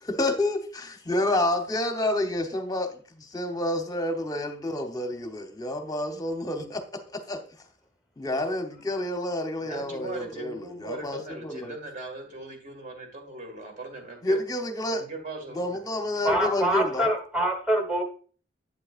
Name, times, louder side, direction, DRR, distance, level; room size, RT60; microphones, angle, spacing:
voice 1, 0.0-6.8 7.1-7.4 8.2-11.7 14.2-15.0 15.5-17.1, left 1 dB, 20° left, 0.9 m, -29 dB
voice 2, 9.6-14.4 14.9-15.8, right 2 dB, 40° right, 1.9 m, -39 dB
voice 3, 16.2-18.0, right 1 dB, 5° right, 1.4 m, -25 dB
8.3 x 7.6 x 2.4 m
head